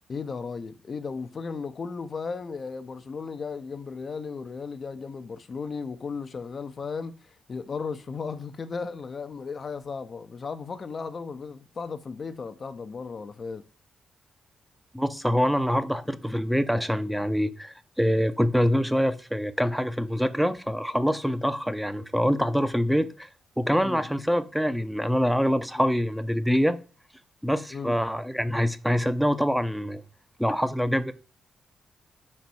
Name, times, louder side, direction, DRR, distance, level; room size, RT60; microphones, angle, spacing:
voice 1, 0.1-7.2 7.5-13.6 23.8-24.0 25.7-25.9 27.7-28.0, left 5 dB, 50° left, 0.5 m, -35 dB
voice 2, 14.9-23.3 23.6-26.8 27.4-30.0 30.4-31.1, equal, ahead, 0.6 m, -25 dB
5.1 x 4.2 x 4.6 m
supercardioid pair, 50°, 0 cm